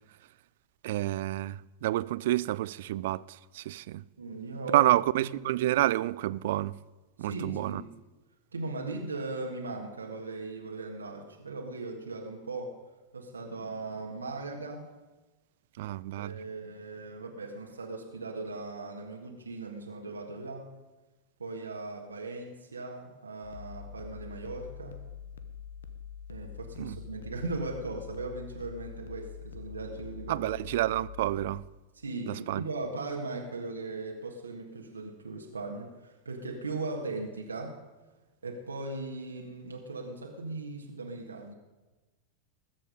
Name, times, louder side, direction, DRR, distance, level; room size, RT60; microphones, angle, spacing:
voice 1, 0.8-4.0 4.7-6.8 7.2-7.8 15.8-16.4 26.8-27.0 30.3-31.6 32.3-32.6, right 15 dB, 55° right, 0.4 m, -29 dB
voice 2, 4.2-4.9 5.2-5.3 7.2-7.9 8.5-12.7 13.1-14.9 16.2-20.7 21.4-25.0 26.3-30.5 31.9-37.8 38.4-41.5, right 3 dB, 75° right, 1.7 m, -38 dB
sound 1, 23.4-31.6, left 7 dB, 65° left, 1.0 m, -45 dB
20.0 x 7.6 x 5.2 m
figure-of-eight pair, 90°, 0 cm